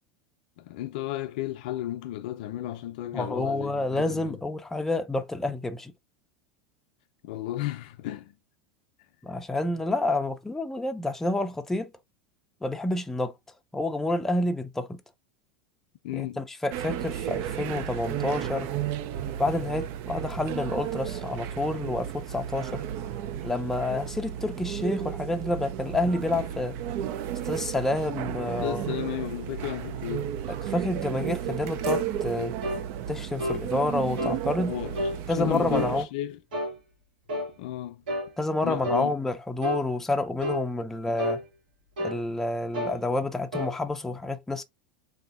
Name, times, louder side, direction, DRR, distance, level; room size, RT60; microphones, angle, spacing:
voice 1, 0.6-4.4 7.2-8.4 16.0-16.4 28.6-30.3 34.7-36.4 37.6-38.0 38.6-39.2, left 13 dB, 70° left, 0.5 m, -33 dB
voice 2, 3.1-5.9 9.2-11.9 12.6-13.3 13.7-15.0 16.1-18.7 19.4-22.8 23.4-26.8 27.5-28.8 30.5-32.6 33.1-34.7 35.3-36.1 38.4-41.4 42.0-44.6, left 2 dB, 5° left, 0.5 m, -29 dB
sound 1, 16.7-36.0, right 10 dB, 55° right, 0.4 m, -33 dB
sound 2, 31.8-32.1 32.6-32.8 33.4-33.6 34.2-34.4 34.9-35.2 35.7-36.0 36.5-36.8 37.3-37.5 38.1-38.3 38.8-39.1 39.6-39.8 40.4-40.7 41.2-41.4 42.0-42.2 42.7-43.0 43.5-43.7, equal, 90° right, 1.8 m, -30 dB
3.5 x 2.7 x 2.4 m
hypercardioid pair, 105°, 5 cm